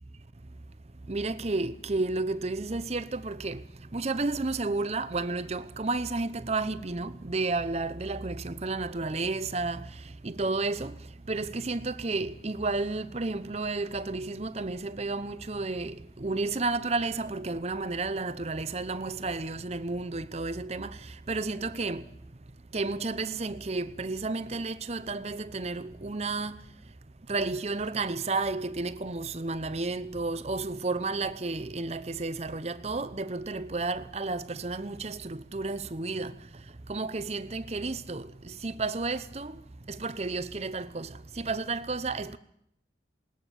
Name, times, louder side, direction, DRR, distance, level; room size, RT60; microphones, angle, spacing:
voice 1, 1.1-3.6 3.9-9.9 10.2-11.0 11.3-22.1 22.7-26.6 27.3-36.3 36.9-42.4, right 3 dB, 35° right, 0.7 m, -32 dB
20.5 x 19.5 x 7.0 m
head